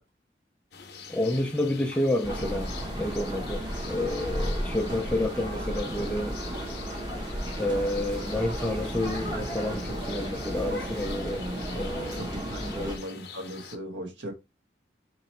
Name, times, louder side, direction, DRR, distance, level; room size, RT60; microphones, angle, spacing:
sound 1, 0.7-13.8, left 6 dB, 60° left, 0.7 m, -45 dB
voice 1, 1.1-6.4 7.6-11.5 11.7-12.3 12.6-13.0, left 1 dB, 5° left, 0.3 m, -29 dB
sound 2, 2.2-13.0, equal, 25° right, 1.0 m, -34 dB
voice 2, 11.7-14.3, equal, 80° right, 1.1 m, -38 dB
2.9 x 2.8 x 4.3 m
head